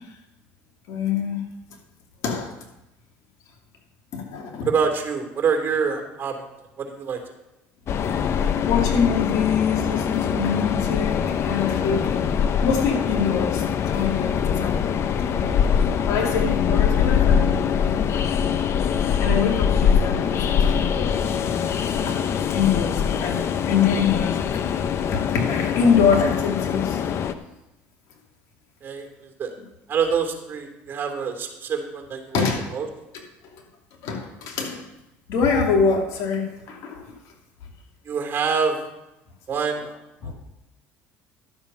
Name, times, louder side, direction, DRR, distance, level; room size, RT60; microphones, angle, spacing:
voice 1, 0.9-1.4 2.2-2.5 4.1-4.7 8.3-12.2 12.6-14.8 15.2-18.2 19.2-21.6 21.9-22.3 22.5-24.8 25.1-27.0 32.3-32.6 34.0-34.8 35.3-37.1 40.2-40.3, left 6 dB, 65° left, 1 dB, 2.8 m, -25 dB
voice 2, 4.6-6.4 6.8-7.2 28.8-29.5 29.9-32.4 32.7-32.9 38.0-38.8 39.5-40.0 40.2-40.3, right 6 dB, 35° right, 3 dB, 2.8 m, -26 dB
Train, 7.9-27.3, left 7 dB, 50° left, 0.8 m, -23 dB
12.0 x 7.4 x 5.6 m, 0.94 s
supercardioid pair, 85°, 6 cm